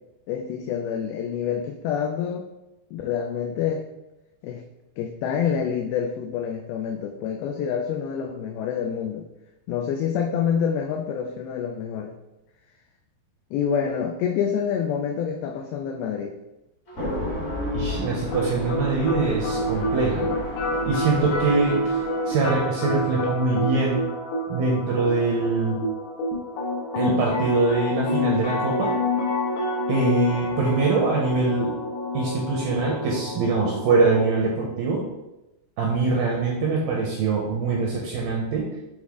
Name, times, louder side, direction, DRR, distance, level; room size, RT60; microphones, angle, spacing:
voice 1, 0.3-2.5 2.9-3.8 4.4-4.6 5.0-9.3 9.7-12.2 13.5-16.4, left 7 dB, 85° left, 3 dB, 2.2 m, -27 dB
sound 1, 16.9-22.5, left 1 dB, 35° left, 1.1 m, -32 dB
voice 2, 17.7-20.3 20.8-22.0 22.3-24.0 24.5-25.8 27.0-28.9 29.9-31.7 32.1-35.0 35.8-38.7, right 3 dB, 80° right, -2 dB, 2.1 m, -23 dB
sound 2, 18.3-34.3, left 2 dB, 70° left, 3.1 m, -28 dB
7.8 x 3.5 x 3.6 m, 0.96 s
omnidirectional pair, 4.9 m